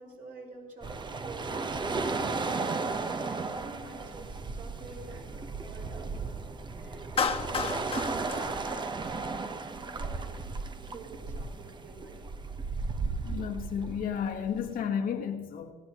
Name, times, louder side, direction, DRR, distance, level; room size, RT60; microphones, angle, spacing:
voice 1, 0.0-6.2 6.8-10.4 10.9-12.3, right 3 dB, 50° right, 5.4 m, -49 dB
sound 1, 0.8-14.8, right 4 dB, 25° right, 0.9 m, -35 dB
Clapping, 7.2-9.5, left 5 dB, 35° left, 1.3 m, -32 dB
voice 2, 13.2-15.7, left 7 dB, 60° left, 1.3 m, -32 dB
19.0 x 15.0 x 3.0 m
cardioid pair, 110°, 17 cm